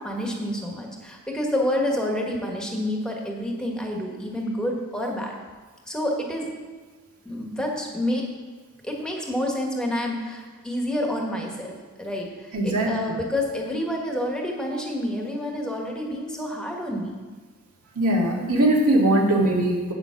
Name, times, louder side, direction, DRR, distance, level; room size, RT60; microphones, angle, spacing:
voice 1, 0.0-5.3 5.9-6.5 7.2-8.3 8.8-17.1, left 1 dB, 5° left, 0 dB, 1.5 m, -28 dB
voice 2, 12.5-13.0 18.0-19.9, right 1 dB, 80° right, -1 dB, 2.1 m, -20 dB
9.1 x 7.0 x 5.8 m, 1.4 s
head